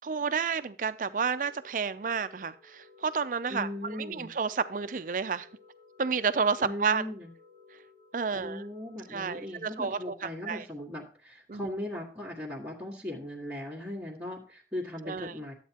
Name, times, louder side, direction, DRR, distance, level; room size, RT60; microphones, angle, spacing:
voice 1, 0.0-5.5 6.0-7.0 8.1-8.6 9.1-10.6 11.5-11.7 15.1-15.3, right 5 dB, 45° right, 13 dB, 0.5 m, -30 dB
sound 1, 1.3-9.5, left 4 dB, 40° left, 2.4 m, -57 dB
voice 2, 3.5-4.3 6.6-7.3 8.3-15.5, left 1 dB, 5° right, -8 dB, 1.7 m, -38 dB
12.5 x 8.2 x 2.9 m, 0.39 s
head